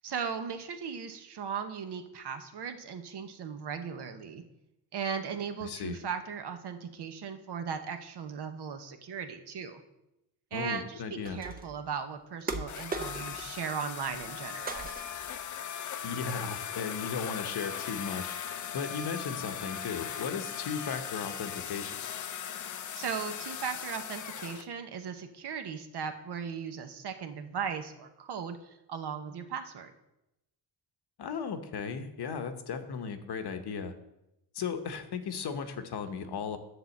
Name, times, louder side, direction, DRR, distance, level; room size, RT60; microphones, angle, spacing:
voice 1, 0.0-4.4 4.9-9.8 10.5-14.9 23.0-29.9, right 6 dB, 65° right, 7 dB, 1.0 m, -37 dB
voice 2, 5.6-6.0 10.5-11.4 16.0-18.4 18.7-22.0 31.2-33.9 34.5-36.6, left 6 dB, 65° left, 8 dB, 1.0 m, -36 dB
sound 1, 11.2-11.8 12.5-13.5 13.8-14.4 14.7-15.3, right 3 dB, 20° right, 0.6 m, -39 dB
sound 2, 12.7-24.6, left 9 dB, 45° left, 0.5 m, -39 dB
10.0 x 3.7 x 7.1 m, 0.89 s
wide cardioid pair, 125°, 42 cm